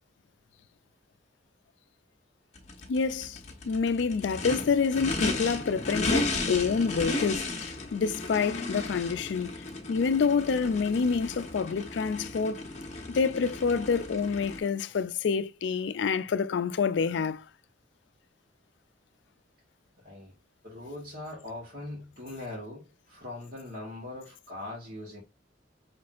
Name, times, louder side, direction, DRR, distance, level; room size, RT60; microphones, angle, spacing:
Race car auto racing / Idling / Accelerating revving vroom, 2.6-14.6, left 2 dB, 40° left, 1.0 m, -34 dB
voice 1, 2.9-3.4 3.6-12.7 13.1-17.4, left 5 dB, 75° left, 0.4 m, -27 dB
voice 2, 20.0-20.3 20.6-25.2, left 2 dB, 55° right, 1.6 m, -41 dB
5.8 x 3.1 x 2.5 m
head